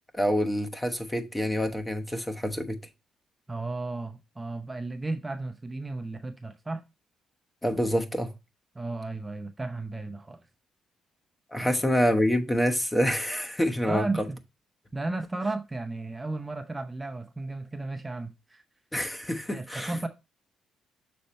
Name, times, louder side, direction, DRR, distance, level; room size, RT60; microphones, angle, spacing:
voice 1, 0.1-2.8 7.6-8.3 11.5-14.1 18.9-19.9, equal, 10° left, 1.0 m, -26 dB
voice 2, 3.5-6.8 8.7-10.4 11.6-11.7 13.8-14.4 14.9-18.6 19.5-20.1, right 2 dB, 15° right, 0.6 m, -34 dB
6.8 x 4.2 x 4.2 m
cardioid pair, 90°, 0 cm